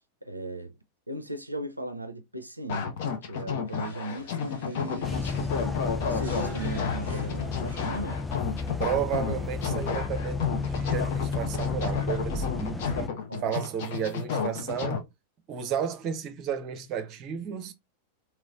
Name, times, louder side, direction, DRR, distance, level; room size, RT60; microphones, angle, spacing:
voice 1, 0.2-0.7 1.1-5.5 6.0-8.2 13.3-13.5, right 1 dB, 85° right, 0.4 m, -37 dB
sound 1, 2.7-15.0, left 6 dB, 50° left, 0.8 m, -32 dB
sound 2, 3.6-8.2, equal, 85° left, 2.0 m, -49 dB
sound 3, 5.0-13.1, left 4 dB, 5° left, 0.3 m, -32 dB
voice 2, 8.8-13.1 13.4-15.1 15.5-17.7, right 8 dB, 35° right, 0.7 m, -33 dB
3.1 x 3.1 x 2.4 m
figure-of-eight pair, 90°, 0 cm